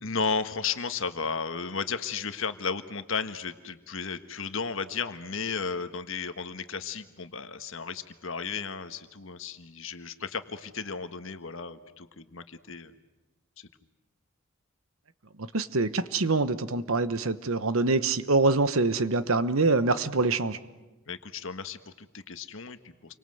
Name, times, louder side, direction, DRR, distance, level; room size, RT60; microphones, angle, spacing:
voice 1, 0.0-12.9 13.6-13.7 21.1-23.1, left 5 dB, 60° left, 9 dB, 1.5 m, -34 dB
voice 2, 15.5-20.6, right 3 dB, 70° right, 13 dB, 1.1 m, -25 dB
29.0 x 24.5 x 7.9 m, 1.1 s
head